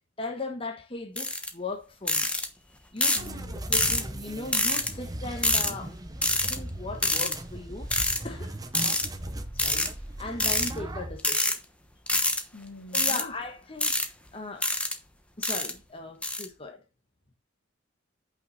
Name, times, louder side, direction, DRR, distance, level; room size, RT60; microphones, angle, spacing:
voice 1, 0.2-2.3 2.9-6.0 6.5-7.9 8.2-8.6 9.6-9.8 10.2-11.6 12.9-14.0 14.3-14.7 15.4-16.8, left 2 dB, 25° left, 1.3 m, -38 dB
sound 1, 1.2-1.5 2.1-2.5 3.0-3.3 3.7-4.0 4.5-4.9 5.4-5.7 6.2-6.6 7.0-7.3 7.9-8.2 8.7-9.1 9.6-9.9 10.4-10.7 11.2-11.5 12.1-12.4 12.9-13.2 13.8-14.1 14.6-14.9 15.4-15.7 16.2-16.4, left 2 dB, 5° left, 1.1 m, -25 dB
voice 2, 3.1-3.6 12.5-13.3, left 1 dB, 65° left, 1.9 m, -44 dB
sound 2, 3.2-11.2, right 1 dB, 20° right, 1.0 m, -38 dB
9.1 x 5.6 x 4.2 m
head